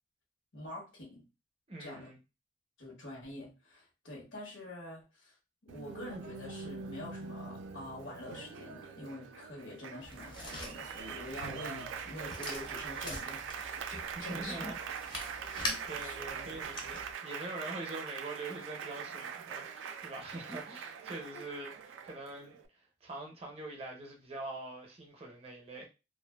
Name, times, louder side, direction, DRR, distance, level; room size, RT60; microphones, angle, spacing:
voice 1, 0.5-1.2 1.8-2.1 2.8-5.3 5.6-14.9 15.6-16.2 21.3-21.4, left 1 dB, 85° left, 1.1 m, -46 dB
voice 2, 1.7-2.2 14.2-14.7 15.9-25.9, right 2 dB, 30° right, 0.5 m, -44 dB
Applause, 5.7-22.7, right 6 dB, 90° right, 0.3 m, -43 dB
sound 1, 10.0-17.1, left 1 dB, 25° left, 0.5 m, -44 dB
2.4 x 2.3 x 2.2 m
head